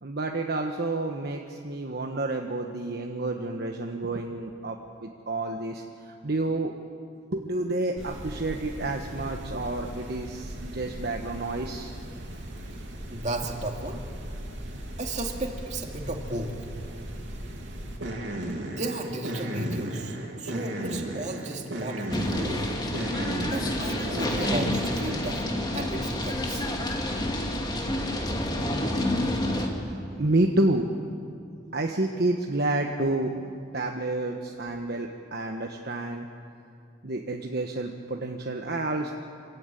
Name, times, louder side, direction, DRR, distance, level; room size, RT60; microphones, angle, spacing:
voice 1, 0.0-5.8 6.2-6.7 7.3-11.9 29.9-30.9 31.7-36.3 37.0-39.1, right 2 dB, 55° right, 3 dB, 1.2 m, -29 dB
sound 1, 8.0-25.4, right 1 dB, 75° right, 3.0 m, -36 dB
voice 2, 13.1-14.0 15.0-16.5 18.6-22.6 23.4-26.6, right 1 dB, 40° right, 2 dB, 2.4 m, -34 dB
sound 2, 22.1-29.7, left 1 dB, 20° left, 2.2 m, -29 dB
26.0 x 15.0 x 9.1 m, 2.4 s
head